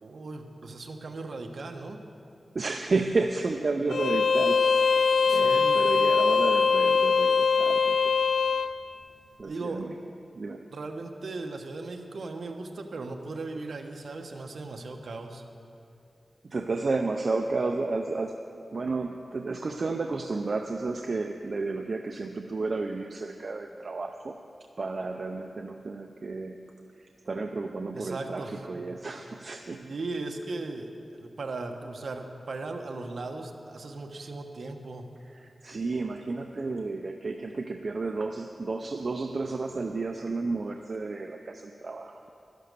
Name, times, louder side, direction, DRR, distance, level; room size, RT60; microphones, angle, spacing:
voice 1, 0.0-2.0 5.3-5.9 9.4-9.9 10.7-15.4 27.9-28.9 29.8-35.1, right 3 dB, 65° right, 4 dB, 1.1 m, -37 dB
voice 2, 2.5-8.0 9.4-10.0 10.3-10.6 16.5-18.4 18.7-24.3 24.8-29.9 35.3-42.3, right 3 dB, 50° right, 4 dB, 0.5 m, -32 dB
Bowed string instrument, 3.9-8.7, left 5 dB, 75° left, 0.5 m, -22 dB
12.5 x 11.5 x 6.7 m, 2.7 s
wide cardioid pair, 120°, 0 cm